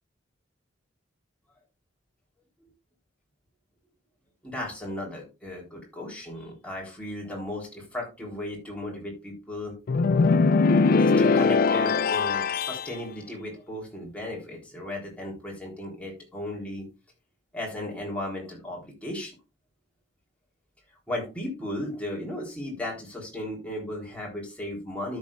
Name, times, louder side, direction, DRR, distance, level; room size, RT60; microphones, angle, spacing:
voice 1, 4.4-9.8 11.0-16.9 17.5-19.3 21.1-25.2, left 1 dB, 5° left, -3 dB, 3.7 m, -35 dB
sound 1, 9.9-12.9, left 4 dB, 45° left, 0.3 m, -21 dB
14.0 x 7.4 x 2.5 m, 0.28 s
head